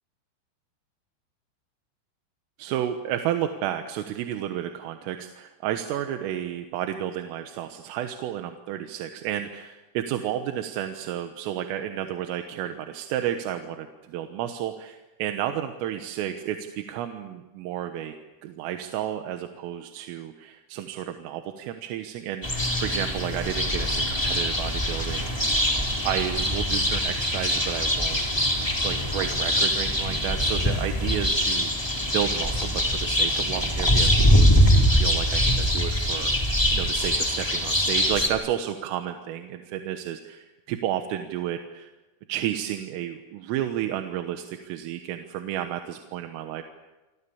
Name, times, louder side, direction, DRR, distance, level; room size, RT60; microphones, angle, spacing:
voice 1, 2.6-18.2 18.4-28.2 28.8-41.9 42.3-46.6, right 11 dB, 90° right, 6 dB, 3.9 m, -32 dB
sound 1, 22.4-38.3, equal, 5° left, 2.5 m, -23 dB
28.5 x 25.0 x 7.1 m, 1.1 s
omnidirectional pair, 5.7 m